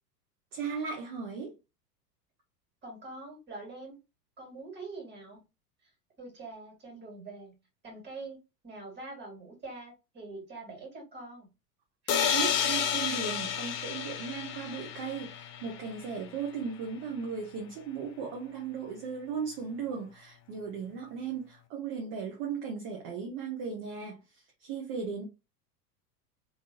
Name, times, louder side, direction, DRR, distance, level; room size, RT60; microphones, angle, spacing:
voice 1, 0.5-1.5 12.3-25.2, right 6 dB, 40° right, 1.0 m, -37 dB
voice 2, 2.8-4.0 4.4-5.4 6.2-7.5 7.8-8.4 8.6-11.5 12.0-12.1, right 3 dB, 20° right, 2.3 m, -44 dB
sound 1, 12.1-15.9, left 8 dB, 20° left, 0.3 m, -31 dB
3.7 x 3.1 x 2.8 m
figure-of-eight pair, 90°, 48 cm